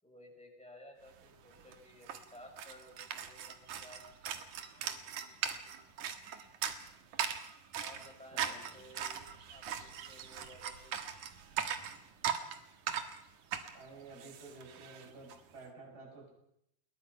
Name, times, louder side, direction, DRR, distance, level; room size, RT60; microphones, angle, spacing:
voice 1, 0.0-4.4 7.8-9.2 9.5-11.3, left 1 dB, ahead, 1 dB, 6.1 m, -56 dB
sound 1, 1.2-1.3 1.5-15.4, right 8 dB, 60° right, 2.4 m, -40 dB
voice 2, 8.3-8.6 13.7-16.3, right 3 dB, 20° right, -1 dB, 7.7 m, -52 dB
28.5 x 21.5 x 5.7 m, 0.77 s
omnidirectional pair, 5.2 m